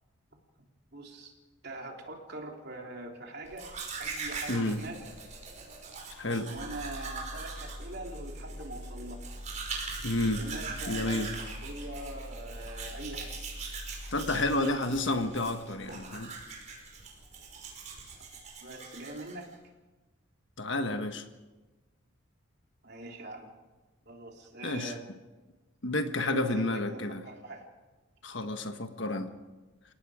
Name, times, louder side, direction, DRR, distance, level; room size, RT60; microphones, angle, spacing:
voice 1, 0.9-1.3 1.6-3.7 4.0-5.1 6.5-9.2 10.4-13.4 18.6-19.5 22.8-23.5 24.0-25.0 26.2-27.7, right 2 dB, 50° right, 1 dB, 3.4 m, -43 dB
Domestic sounds home sounds, 3.5-19.5, right 4 dB, 35° right, 5.2 m, -42 dB
voice 2, 4.5-4.8 6.2-6.5 10.0-10.4 10.9-11.3 14.1-16.3 20.6-21.2 24.6-24.9 25.8-27.2 28.2-29.3, left 2 dB, 60° left, 7 dB, 1.5 m, -30 dB
sound 1, 6.6-14.6, left 1 dB, 5° right, 2.1 m, -44 dB
29.5 x 18.0 x 5.0 m, 1.2 s
head